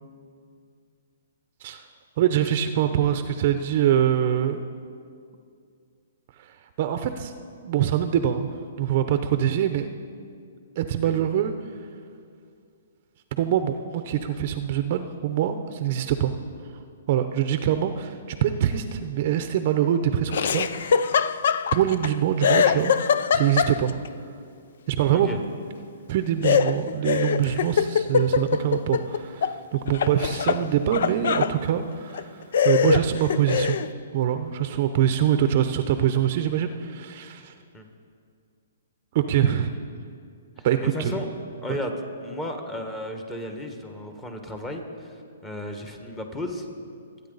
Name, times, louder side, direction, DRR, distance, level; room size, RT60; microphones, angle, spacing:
voice 1, 2.2-4.6 6.8-7.3 7.6-8.5 8.8-9.9 10.8-11.5 13.4-16.3 17.1-21.1 21.7-22.9 23.3-23.9 24.9-25.3 26.1-33.8 34.1-37.5 39.1-39.7 40.6-41.1 41.7-41.8, right 10 dB, 45° right, 9 dB, 0.6 m, -24 dB
Laughter, 20.3-22.1 22.4-24.1 26.4-29.6 29.9-31.5 32.1-32.2 32.5-33.9, left 7 dB, 65° left, 0.5 m, -23 dB
voice 2, 40.6-41.2 41.6-41.9 42.2-46.6, left 1 dB, 15° left, 4 dB, 1.5 m, -34 dB
25.0 x 9.2 x 4.0 m, 2.3 s
hypercardioid pair, 150°, 0 cm